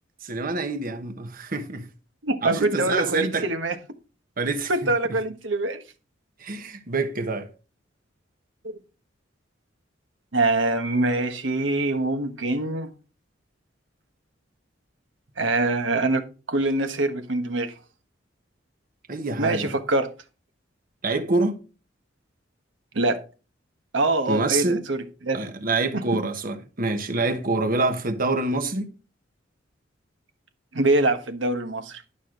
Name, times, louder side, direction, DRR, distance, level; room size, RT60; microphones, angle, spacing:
voice 1, 0.2-1.8 2.4-3.5 4.4-4.9 6.4-7.5 19.1-19.7 21.0-21.6 24.3-24.8 25.3-28.9, right 3 dB, 50° right, 1.2 m, -26 dB
voice 2, 2.2-3.8 4.7-5.8 8.6-8.8 10.3-12.9 15.4-17.7 19.4-20.1 22.9-23.2 23.9-25.5 25.9-26.0 30.7-32.0, right 2 dB, 75° right, 1.3 m, -24 dB
11.5 x 6.3 x 3.8 m
head